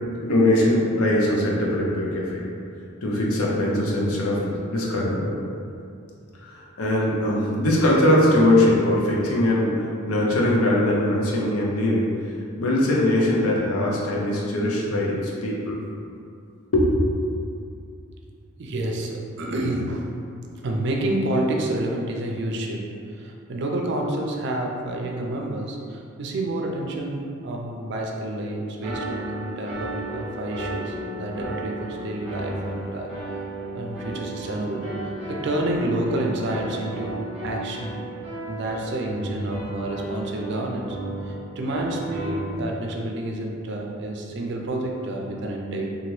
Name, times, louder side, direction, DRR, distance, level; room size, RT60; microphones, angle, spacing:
voice 1, 0.2-2.4 3.0-5.3 6.5-12.1 12.6-15.7 16.7-17.0, left 1 dB, 85° left, -3 dB, 0.6 m, -21 dB
voice 2, 18.6-20.1 20.6-33.1 33.7-37.2 37.4-38.0 38.5-41.0 41.2-46.0, right 1 dB, 55° right, 0 dB, 0.4 m, -29 dB
sound 1, 28.8-42.5, right 1 dB, 5° right, 0.7 m, -34 dB
2.8 x 2.3 x 3.1 m, 2.5 s
head